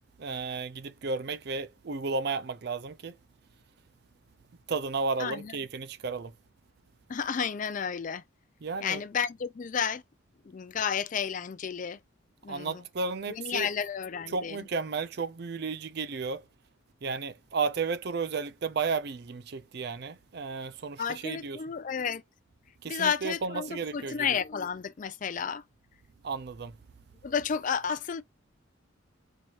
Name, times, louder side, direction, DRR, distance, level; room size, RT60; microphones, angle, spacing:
voice 1, 0.2-3.1 4.7-6.3 8.6-9.0 12.5-13.7 14.3-16.4 17.0-21.6 22.8-24.2 26.2-26.7, right 4 dB, 55° right, 0.5 m, -33 dB
voice 2, 5.2-5.6 7.1-8.2 8.8-10.0 10.4-12.0 12.4-12.8 13.3-14.7 21.0-22.2 22.9-25.6 27.2-28.2, left 7 dB, 40° left, 0.4 m, -32 dB
4.6 x 2.9 x 2.4 m
head